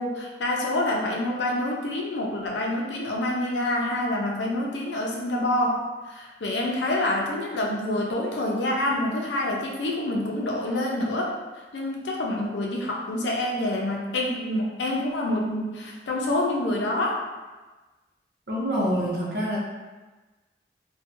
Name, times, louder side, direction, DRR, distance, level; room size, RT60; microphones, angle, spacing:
voice 1, 0.0-11.3 11.7-17.1, left 1 dB, 85° left, -1 dB, 0.5 m, -27 dB
voice 2, 18.5-19.6, equal, 65° right, -5 dB, 0.7 m, -26 dB
2.6 x 2.2 x 2.5 m, 1.2 s
head